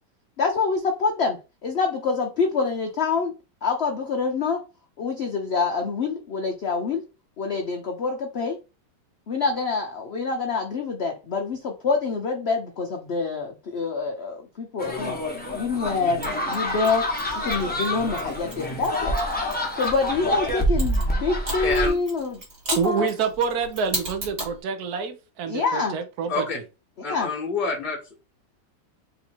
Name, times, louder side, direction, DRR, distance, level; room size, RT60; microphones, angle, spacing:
voice 1, 0.4-3.3 3.6-4.6 5.0-7.0 7.4-8.6 9.3-15.2 15.5-16.2 16.5-17.1 17.4-19.1 19.7-22.4 22.8-23.1 25.5-26.0 27.0-27.3, left 4 dB, 70° left, 3 dB, 0.6 m, -26 dB
sound 1, 14.8-21.9, equal, 5° left, 0.7 m, -27 dB
Mechanisms, 16.2-20.1 20.8-24.6, right 2 dB, 45° right, 2.2 m, -36 dB
voice 2, 21.6-21.9 26.3-26.6 27.0-28.0, left 4 dB, 35° left, -6 dB, 1.1 m, -27 dB
voice 3, 22.8-26.5, right 6 dB, 65° right, 7 dB, 1.2 m, -27 dB
3.8 x 2.8 x 4.3 m, 0.30 s
omnidirectional pair, 1.9 m